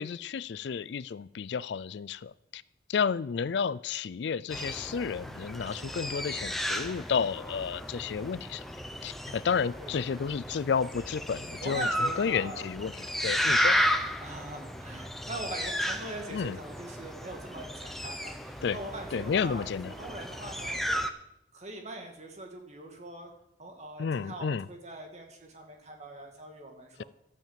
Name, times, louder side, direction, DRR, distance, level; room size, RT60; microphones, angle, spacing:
voice 1, 0.0-2.6 2.9-8.6 9.0-13.8 16.3-16.6 18.6-18.8 19.1-19.9 24.0-24.7, left 6 dB, 65° left, 19 dB, 0.4 m, -31 dB
sound 1, 4.5-21.1, equal, ahead, 0.8 m, -33 dB
voice 2, 9.8-10.3 11.6-12.7 13.4-13.6 14.2-20.8 21.5-23.3 23.6-27.0, right 2 dB, 35° right, 3 dB, 2.3 m, -42 dB
13.0 x 9.0 x 7.5 m, 0.79 s
head